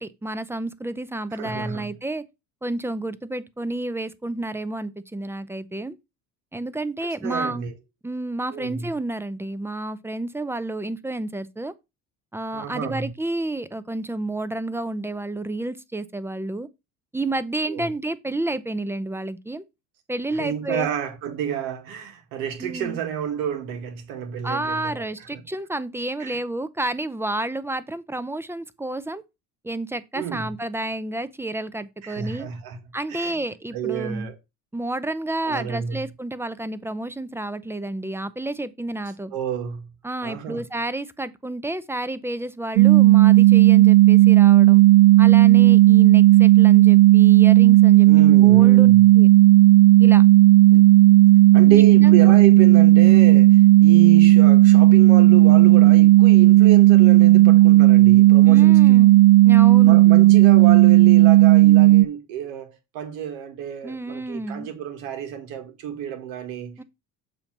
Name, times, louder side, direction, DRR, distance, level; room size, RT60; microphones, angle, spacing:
voice 1, 0.0-2.2 2.6-6.0 6.5-7.6 8.0-11.7 12.3-16.7 17.1-19.6 20.1-20.9 22.6-23.0 24.4-29.2 29.6-32.5 32.9-34.3 34.7-39.3 40.0-44.8 45.2-49.3 50.0-50.2 51.6-52.2 58.5-60.0 63.8-64.7 66.8-66.9, right 2 dB, 5° right, 0.5 m, -30 dB
voice 2, 1.3-1.9 7.2-7.7 8.5-8.9 12.5-13.1 17.7-17.9 20.3-25.4 26.2-26.4 30.1-30.5 32.0-32.8 33.1-33.4 33.7-34.3 35.4-36.0 39.3-39.9 40.2-40.6 48.0-49.1 50.7-50.9 51.5-59.0 59.8-66.8, right 9 dB, 85° right, 1.6 m, -30 dB
sound 1, 42.8-62.0, right 17 dB, 65° right, 0.4 m, -12 dB
7.0 x 2.9 x 5.8 m
supercardioid pair, 95°, 35 cm